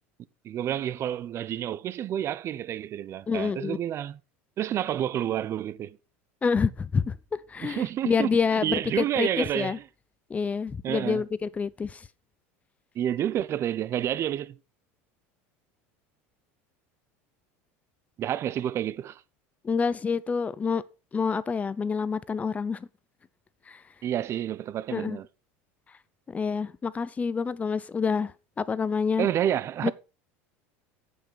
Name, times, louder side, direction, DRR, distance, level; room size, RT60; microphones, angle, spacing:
voice 1, 0.4-4.2 4.6-6.0 7.6-8.3 8.6-9.8 10.8-11.2 12.9-14.6 18.2-19.2 24.0-25.3 29.2-29.9, right 11 dB, 40° right, 0.7 m, -29 dB
voice 2, 3.3-3.8 6.4-9.8 10.3-12.1 19.6-20.8 21.1-22.9 23.7-23.8 24.9-25.2 26.3-29.3 29.8-29.9, left 5 dB, 20° left, 0.7 m, -27 dB
8.3 x 7.5 x 5.8 m
supercardioid pair, 115°, 7 cm